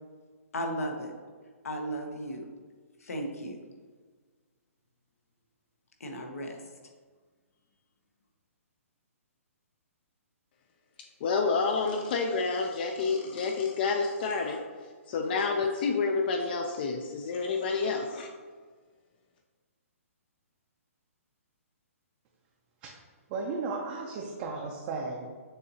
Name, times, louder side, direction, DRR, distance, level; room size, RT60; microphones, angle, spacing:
voice 1, 0.5-1.1 1.6-2.4 3.0-3.6 6.0-6.6, equal, 80° left, 3 dB, 0.9 m, -35 dB
voice 2, 11.2-14.6 15.1-18.3, left 4 dB, 40° left, 3 dB, 0.4 m, -29 dB
voice 3, 23.3-25.3, right 4 dB, 35° right, -1 dB, 0.5 m, -35 dB
6.6 x 2.8 x 2.8 m, 1.5 s
hypercardioid pair, 140°, 8 cm